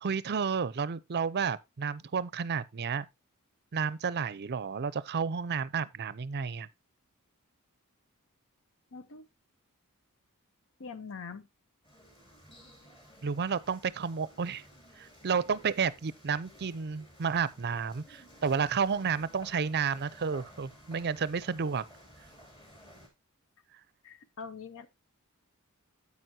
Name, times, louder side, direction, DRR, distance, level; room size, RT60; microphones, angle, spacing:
voice 1, 0.0-3.1 3.7-6.7 13.2-14.6 15.0-21.8, right 6 dB, 50° right, 0.5 m, -31 dB
voice 2, 8.9-9.3 10.8-11.5 24.0-24.9, left 5 dB, 65° left, 0.8 m, -43 dB
sound 1, 11.8-23.1, equal, 25° left, 2.7 m, -55 dB
9.2 x 8.4 x 2.7 m
head